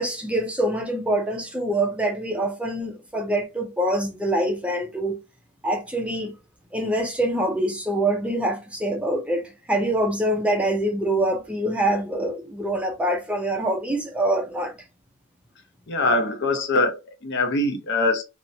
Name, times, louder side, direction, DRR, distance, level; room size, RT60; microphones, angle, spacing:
voice 1, 0.0-5.2 5.6-6.3 6.7-14.7, right 1 dB, 5° right, 0.4 m, -25 dB
voice 2, 15.9-18.2, left 2 dB, 55° left, 0.7 m, -23 dB
2.9 x 2.1 x 2.5 m
head